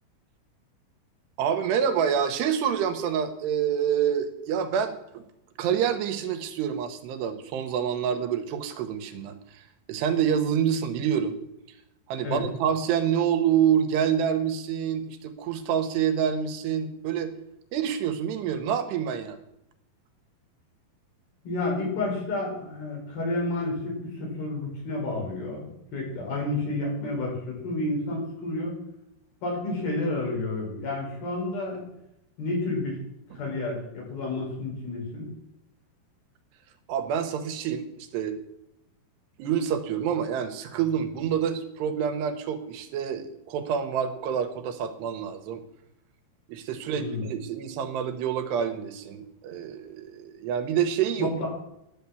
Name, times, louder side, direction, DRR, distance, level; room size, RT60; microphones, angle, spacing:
voice 1, 1.4-5.2 5.6-11.4 12.1-17.4 17.7-19.4 33.3-33.4 36.9-38.3 39.4-45.6 46.5-51.3, right 8 dB, 90° right, 8 dB, 3.2 m, -27 dB
voice 2, 21.4-28.8 29.4-31.9 32.4-33.0 33.3-35.2 46.9-47.3 51.2-51.5, left 2 dB, 65° left, -2 dB, 6.6 m, -30 dB
11.5 x 9.5 x 7.1 m, 0.84 s
omnidirectional pair, 4.7 m